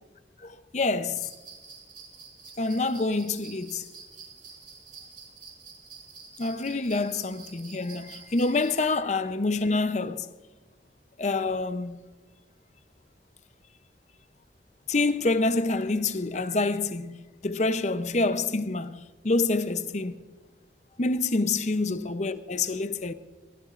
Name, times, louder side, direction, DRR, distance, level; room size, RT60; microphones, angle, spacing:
voice 1, 0.4-1.3 2.6-3.9 6.4-10.3 11.2-12.0 14.9-20.1 21.0-23.1, left 3 dB, 40° left, 0.6 m, -27 dB
sound 1, 1.1-8.8, right 5 dB, 50° right, 4.2 m, -48 dB
22.5 x 18.5 x 2.5 m
head